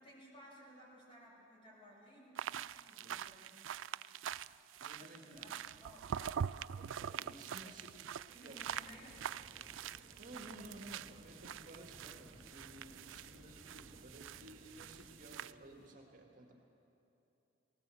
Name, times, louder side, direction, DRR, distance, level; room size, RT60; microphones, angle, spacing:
voice 1, 0.0-2.6 2.9-3.6 5.0-6.0 7.6-7.8 8.3-9.2 13.3-13.5, equal, 30° left, -4 dB, 6.3 m, -58 dB
sound 1, 2.3-15.5, right 8 dB, 90° right, 0.4 m, -45 dB
voice 2, 4.8-5.5 6.8-7.9 8.4-8.6 10.2-16.5, right 1 dB, 45° right, 1 dB, 1.9 m, -55 dB
sound 2, 5.3-15.9, equal, 50° left, 2.6 m, -68 dB
sound 3, 8.6-15.1, equal, 30° right, 4.0 m, -60 dB
19.0 x 18.5 x 7.6 m, 2.9 s
head